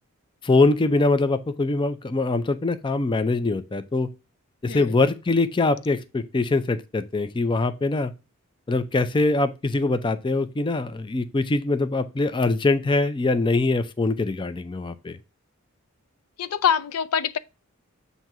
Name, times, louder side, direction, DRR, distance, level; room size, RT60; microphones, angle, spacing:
voice 1, 0.4-4.1 4.6-8.1 8.7-15.2, left 3 dB, 20° left, 0.4 m, -23 dB
voice 2, 16.4-17.4, left 7 dB, 80° left, 0.5 m, -24 dB
7.5 x 2.7 x 5.8 m
head